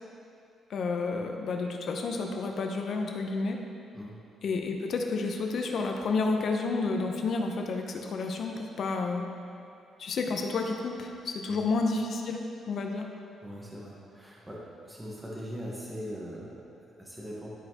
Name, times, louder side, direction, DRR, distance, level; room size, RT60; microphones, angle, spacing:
voice 1, 0.7-3.6 4.4-9.3 10.0-13.1, left 3 dB, 60° left, 2 dB, 0.8 m, -30 dB
voice 2, 13.4-17.5, equal, 10° right, -5 dB, 1.3 m, -41 dB
12.0 x 4.3 x 3.0 m, 2.5 s
cardioid pair, 90°, 0 cm